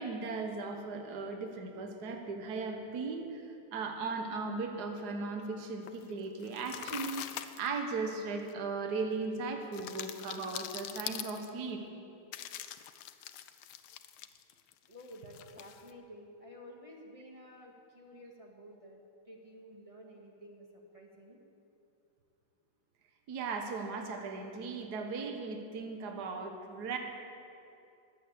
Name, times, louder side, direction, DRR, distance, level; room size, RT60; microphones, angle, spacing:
voice 1, 0.0-11.8 23.3-27.0, right 4 dB, 55° right, 4 dB, 1.8 m, -37 dB
sound 1, 5.9-6.1 6.4-7.7 8.5-8.6 9.7-11.5 12.3-14.7 15.0-15.9, left 11 dB, 85° left, 1.5 m, -43 dB
voice 2, 14.9-19.0 19.3-21.4, equal, 15° right, -1 dB, 1.8 m, -52 dB
20.0 x 8.2 x 8.3 m, 2.6 s
omnidirectional pair, 2.3 m